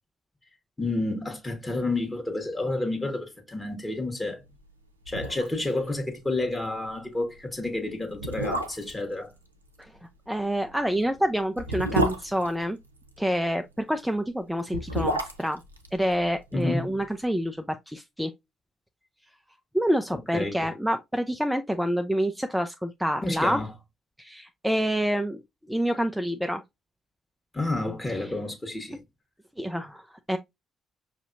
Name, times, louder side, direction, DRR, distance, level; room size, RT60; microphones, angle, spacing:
voice 1, 0.8-4.4 5.1-9.3 16.5-17.0 20.1-20.7 23.2-23.7 27.5-29.0, left 2 dB, 20° left, 1.4 m, -30 dB
sound 1, 4.7-4.8 5.0-5.7 6.0-6.1 6.5-6.7 7.4-7.5 8.1-9.0 10.6-13.2 14.5-16.7 17.0-17.1, right 1 dB, 90° right, 0.4 m, -30 dB
voice 2, 10.3-12.8 13.2-15.6 15.9-18.3 19.7-23.6 24.2-25.4 25.7-26.6 28.2-28.3 29.6-30.4, equal, 5° right, 0.5 m, -27 dB
5.8 x 2.7 x 2.5 m
figure-of-eight pair, 45°, 0 cm